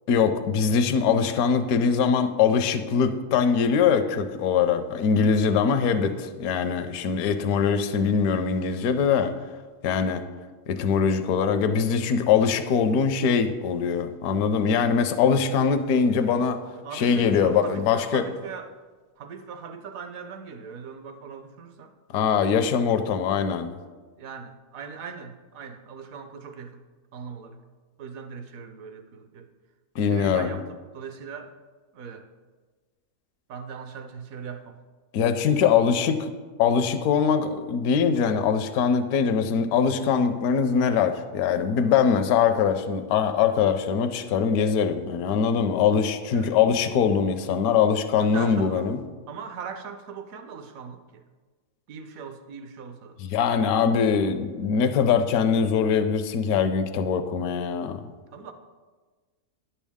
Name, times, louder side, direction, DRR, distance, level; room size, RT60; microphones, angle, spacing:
voice 1, 0.1-9.3 9.8-10.2 10.7-16.6 16.9-18.2 22.1-23.7 30.0-30.5 35.1-36.3 36.6-49.0 53.2-58.0, left 6 dB, 75° left, 9 dB, 1.1 m, -22 dB
voice 2, 16.8-18.7 19.2-21.9 24.2-26.8 27.1-27.6 28.0-29.5 30.1-31.5 31.9-32.3 33.5-34.8 46.3-46.5 48.2-48.9 49.3-51.2 51.9-53.2 58.3-58.5, right 6 dB, 65° right, 8 dB, 1.1 m, -40 dB
10.5 x 7.3 x 3.5 m, 1.4 s
omnidirectional pair, 1.7 m